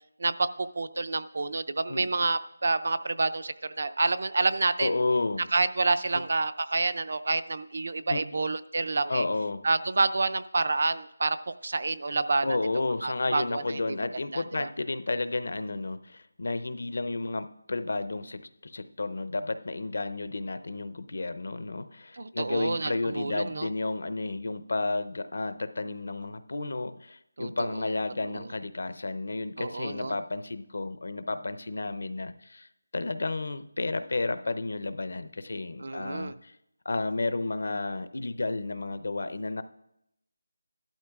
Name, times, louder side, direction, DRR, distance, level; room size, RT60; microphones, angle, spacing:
voice 1, 0.2-5.0 5.5-9.2 9.6-12.6 13.0-13.8 14.3-14.7 22.2-23.7 27.4-27.9 28.3-28.5 29.6-30.1 35.8-36.3, right 3 dB, 55° right, 13 dB, 0.4 m, -28 dB
voice 2, 4.8-5.4 6.1-6.2 8.1-8.2 9.1-9.6 12.4-36.6 36.8-39.6, left 3 dB, 65° left, 12 dB, 0.6 m, -32 dB
15.0 x 12.0 x 2.4 m, 0.80 s
figure-of-eight pair, 170°, 0 cm